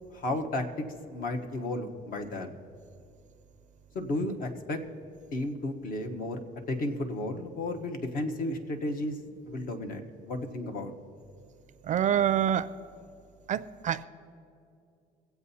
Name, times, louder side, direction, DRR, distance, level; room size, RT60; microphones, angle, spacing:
voice 1, 0.1-0.7 1.1-2.6 3.9-4.8 5.3-6.4 6.7-9.2 9.4-10.9, left 1 dB, 55° left, 5 dB, 1.1 m, -33 dB
voice 2, 11.8-12.7 13.5-14.1, right 9 dB, 45° right, 13 dB, 0.4 m, -26 dB
22.5 x 8.0 x 2.8 m, 2.6 s
cardioid pair, 110°, 17 cm